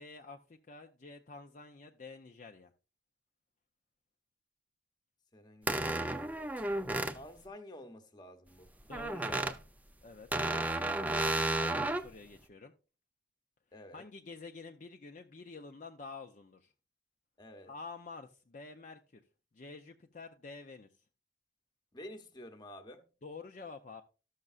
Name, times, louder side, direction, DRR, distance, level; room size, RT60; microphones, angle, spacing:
voice 1, 0.0-2.7 8.9-9.6 10.0-12.7 13.9-16.7 17.7-19.2 19.5-20.9 23.2-24.0, left 4 dB, 45° left, 0.5 m, -49 dB
voice 2, 5.3-6.7 7.1-8.7 13.7-14.1 17.4-17.7 21.9-23.0, left 1 dB, 25° left, 0.9 m, -51 dB
sound 1, 5.7-7.2 8.9-9.5 10.3-12.1, right 2 dB, 10° right, 0.4 m, -32 dB
13.5 x 6.5 x 2.4 m
head